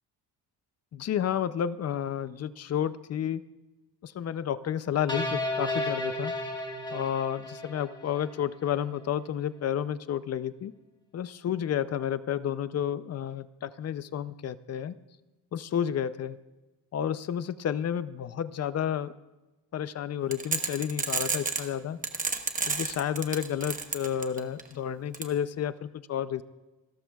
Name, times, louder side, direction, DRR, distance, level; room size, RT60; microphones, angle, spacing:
voice 1, 0.9-3.4 4.0-6.3 6.9-10.7 11.1-14.9 15.5-16.4 16.9-19.1 19.7-22.0 22.7-26.4, left 9 dB, 40° left, 15 dB, 0.4 m, -31 dB
sound 1, 5.1-8.4, left 1 dB, 10° left, 1.6 m, -33 dB
sound 2, 20.3-21.7 22.0-24.6 25.1-25.2, right 4 dB, 20° right, 0.9 m, -29 dB
28.0 x 13.5 x 2.3 m, 1.1 s
cardioid pair, 170°, 42 cm